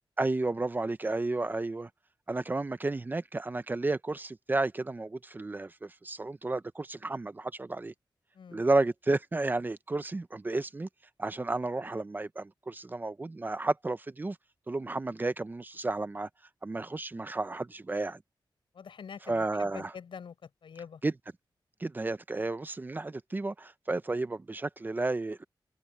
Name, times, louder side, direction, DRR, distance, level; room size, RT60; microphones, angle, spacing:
voice 1, 0.2-1.9 2.3-7.9 8.5-10.9 11.2-14.4 14.7-16.3 16.6-18.2 19.3-19.9 21.0-21.1 21.8-25.4, right 2 dB, 25° right, 0.6 m, -32 dB
voice 2, 18.7-21.0, left 6 dB, 85° left, 6.8 m, -46 dB
wide cardioid pair, 155°, 8 cm